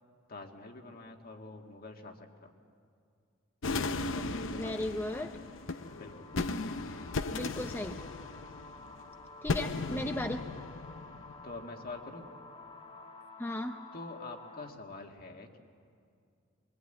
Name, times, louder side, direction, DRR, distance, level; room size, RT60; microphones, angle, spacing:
voice 1, 0.3-2.5 3.9-4.8 5.1-5.5 5.9-6.3 11.4-12.3 13.9-15.6, left 2 dB, 50° left, 3 dB, 2.0 m, -46 dB
sound 1, 3.6-11.8, left 3 dB, 80° left, 0.8 m, -37 dB
voice 2, 4.5-5.4 7.3-8.0 9.4-10.5 13.4-13.8, left 1 dB, 10° left, 5 dB, 0.6 m, -36 dB
sound 2, 4.9-14.7, left 3 dB, 30° left, 1.6 m, -51 dB
23.0 x 22.5 x 9.0 m, 2.3 s
head